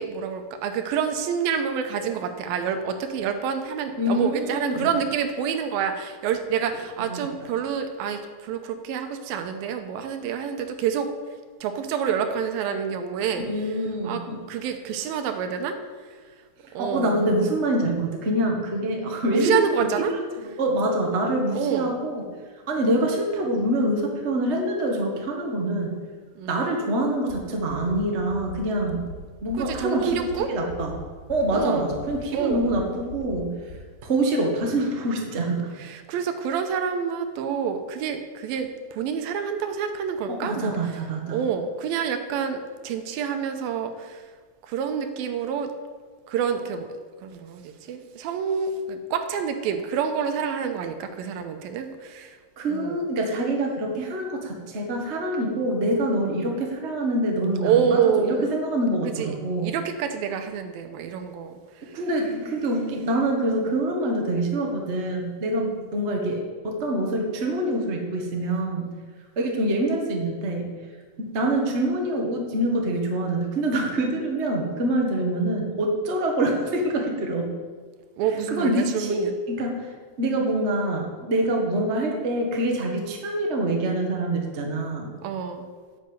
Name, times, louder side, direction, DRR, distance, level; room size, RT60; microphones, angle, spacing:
voice 1, 0.0-11.1 11.6-13.7 14.0-14.2 14.5-15.8 16.0-16.2 16.7-17.3 19.3-20.1 21.5-22.0 26.4-26.7 29.5-30.5 31.5-31.9 32.3-32.7 35.8-40.9 41.3-44.2 44.7-45.7 46.3-46.9 47.2-52.4 52.7-53.0 57.6-58.5 59.1-59.4 59.6-62.0 78.2-79.3 85.2-85.7, right 7 dB, 80° right, 7 dB, 2.6 m, -27 dB
voice 2, 4.0-4.9 7.0-7.2 13.5-14.4 16.8-19.5 20.1-20.2 20.6-22.2 22.7-25.9 26.5-29.0 29.4-30.9 31.3-33.5 34.0-35.7 40.3-41.4 52.6-59.7 61.8-68.9 69.3-70.7 71.2-77.5 78.5-79.9 80.2-85.1, right 1 dB, 60° right, 1 dB, 0.7 m, -25 dB
sound 1, 27.3-27.4 27.7-28.0 28.3-28.6 28.9-29.2 29.5-29.8 30.1-30.4 30.7-30.9 31.3-31.6 31.9-32.2 32.5-32.8 33.1-33.4 33.7-33.8, equal, 70° left, 4.7 m, -39 dB
11.0 x 6.6 x 8.1 m, 1.5 s
omnidirectional pair, 4.3 m